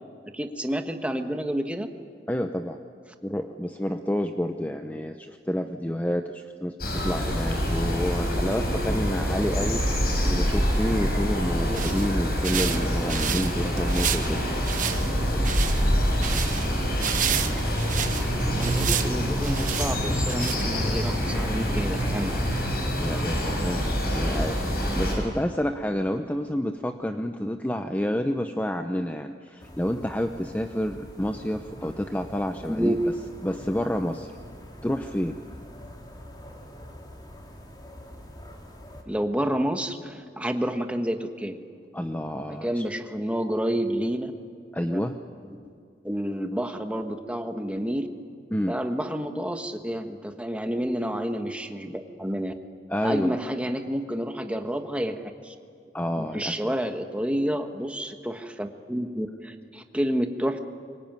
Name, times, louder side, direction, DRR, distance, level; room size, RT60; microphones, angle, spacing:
voice 1, 0.3-1.9 10.2-10.4 11.7-11.9 18.3-22.5 32.7-33.0 39.0-41.6 42.5-44.3 44.9-45.0 45.4-45.7 46.0-48.1 48.7-52.5 53.0-55.5 56.2-60.6, equal, 5° right, 5 dB, 1.4 m, -29 dB
voice 2, 2.3-2.8 3.2-14.5 23.0-33.0 33.4-34.3 34.8-35.4 41.9-42.9 44.7-45.2 48.5-48.8 52.9-53.4 55.9-56.7, equal, 10° left, 6 dB, 0.8 m, -29 dB
sound 1, 6.8-25.1, equal, 60° left, 7.2 m, -26 dB
sound 2, 11.5-21.0, right 7 dB, 50° right, 1.1 m, -32 dB
sound 3, 29.6-39.0, equal, 25° left, 3.3 m, -45 dB
24.5 x 23.5 x 9.3 m, 2.2 s
head